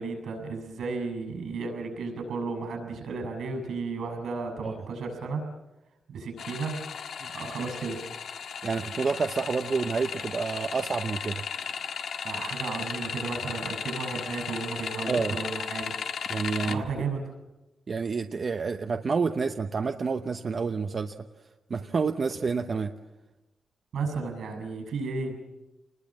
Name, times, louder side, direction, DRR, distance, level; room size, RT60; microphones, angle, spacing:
voice 1, 0.0-5.5 6.1-6.8 7.3-8.0 12.2-15.9 16.6-17.3 23.9-25.4, right 4 dB, 80° right, 6 dB, 7.0 m, -33 dB
sound 1, 6.4-16.8, left 7 dB, 80° left, 1.5 m, -35 dB
voice 2, 8.6-11.4 15.1-15.4 16.3-17.0 17.9-21.1 21.7-22.9, right 5 dB, 40° right, 6 dB, 0.9 m, -29 dB
28.5 x 20.5 x 7.5 m, 1.1 s
wide cardioid pair, 150°, 0 cm